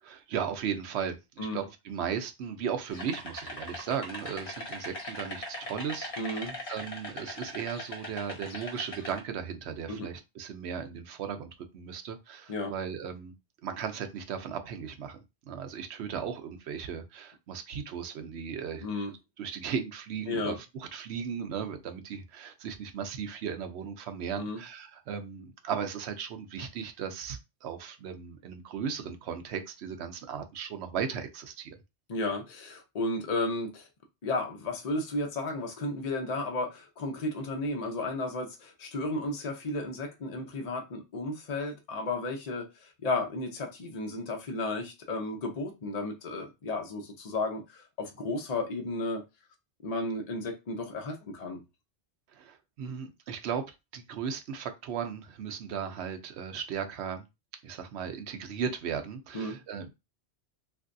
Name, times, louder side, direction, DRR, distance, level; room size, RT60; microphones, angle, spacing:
voice 1, 0.0-13.3 13.6-15.2 15.5-19.0 19.4-31.8 52.3-53.6 53.9-57.3 57.6-59.9, right 7 dB, 75° right, 0.8 m, -36 dB
sound 1, 2.9-9.2, left 1 dB, 55° left, 1.1 m, -40 dB
voice 2, 6.2-6.6 9.9-10.1 12.5-12.7 18.8-19.1 20.3-20.6 24.3-24.6 32.1-33.9 34.2-49.2 49.8-51.6 59.3-59.6, left 2 dB, 40° left, 0.7 m, -33 dB
3.2 x 2.6 x 2.5 m
omnidirectional pair, 1.2 m